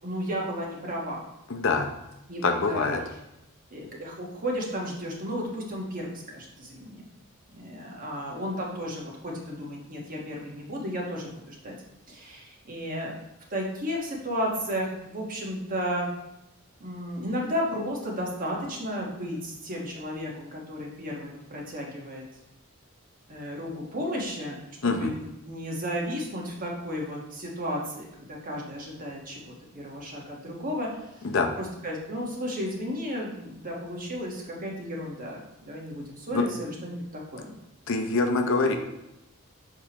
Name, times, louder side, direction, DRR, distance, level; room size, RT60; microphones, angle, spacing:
voice 1, 0.0-1.2 2.3-2.9 3.7-7.1 7.5-11.8 12.1-13.2 13.5-16.1 16.8-22.2 23.3-30.9 31.2-31.3 31.6-37.5, equal, 40° right, -2 dB, 1.3 m, -33 dB
voice 2, 1.5-1.9 2.4-3.0 24.8-25.1 31.2-31.5 36.3-36.4 37.9-38.8, left 3 dB, 65° left, 4 dB, 0.7 m, -24 dB
6.6 x 4.9 x 2.9 m, 0.88 s
head